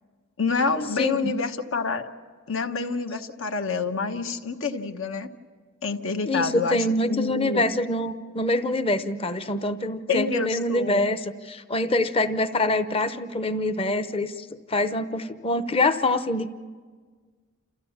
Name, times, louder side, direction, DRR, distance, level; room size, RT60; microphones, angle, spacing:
voice 1, 0.4-2.1 2.5-5.3 5.8-6.8 7.1-7.6 10.1-11.1, left 4 dB, 75° left, 6 dB, 1.2 m, -27 dB
voice 2, 1.0-1.3 6.2-16.6, left 2 dB, 25° left, 11 dB, 0.7 m, -25 dB
29.0 x 14.5 x 7.2 m, 1.5 s
head